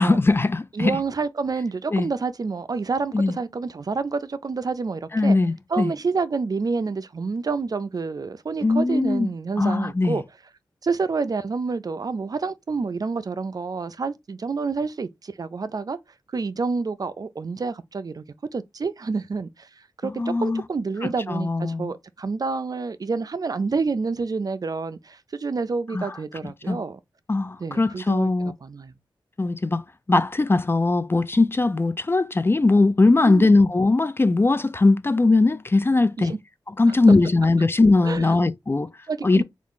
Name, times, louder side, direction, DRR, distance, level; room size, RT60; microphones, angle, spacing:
voice 1, 0.0-1.0 1.9-2.1 3.1-3.3 5.1-5.9 8.6-9.3 9.6-10.2 20.0-20.6 21.0-21.9 25.9-26.1 26.7-26.8 27.3-28.5 29.4-29.8 30.1-36.3 36.8-38.9 39.2-39.4, left 3 dB, 30° left, 0.3 m, -20 dB
voice 2, 0.7-5.4 5.7-10.2 10.8-16.0 16.3-18.2 18.5-19.7 20.0-27.0 27.6-28.3 28.6-28.9 33.2-33.6 36.2-36.4 38.0-38.3 39.1-39.4, right 4 dB, 50° right, 0.4 m, -28 dB
3.6 x 2.4 x 3.6 m
cardioid pair, 60°, 8 cm